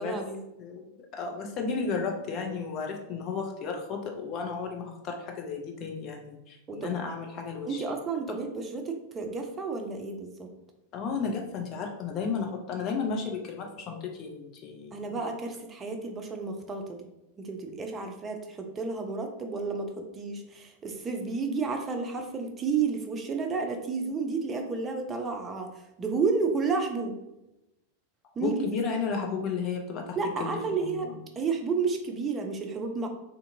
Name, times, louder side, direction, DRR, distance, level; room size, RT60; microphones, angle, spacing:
voice 1, 0.0-0.4 6.7-6.9 7.7-10.5 12.9-13.0 14.9-17.1 17.4-25.7 26.0-27.2 28.4-28.7 30.2-33.1, right 4 dB, 20° right, 4 dB, 0.4 m, -31 dB
voice 2, 0.6-7.8 8.3-8.4 10.9-15.2 28.4-31.2, left 5 dB, 35° left, 2 dB, 0.5 m, -33 dB
2.5 x 2.5 x 2.6 m, 0.91 s
figure-of-eight pair, 90°, 0 cm